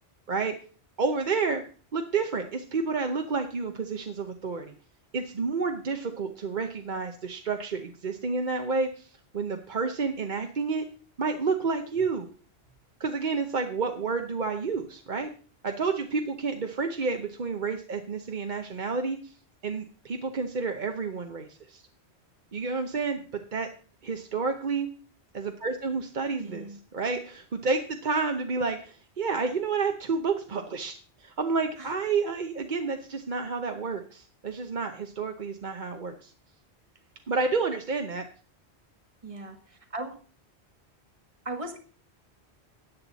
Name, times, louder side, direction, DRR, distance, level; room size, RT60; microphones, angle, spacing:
voice 1, 1.0-1.6 1.9-4.7 5.1-10.9 11.2-12.3 13.0-15.3 15.6-19.3 19.6-21.8 22.5-23.2 23.5-23.7 24.0-24.9 25.3-30.9 31.2-36.3 37.3-38.3, right 4 dB, 50° right, 5 dB, 1.0 m, -30 dB
voice 2, 26.4-26.8 31.8-31.9 39.2-40.2 41.4-41.8, right 2 dB, 30° right, 7 dB, 1.5 m, -38 dB
13.5 x 8.8 x 4.1 m, 0.41 s
omnidirectional pair, 1.1 m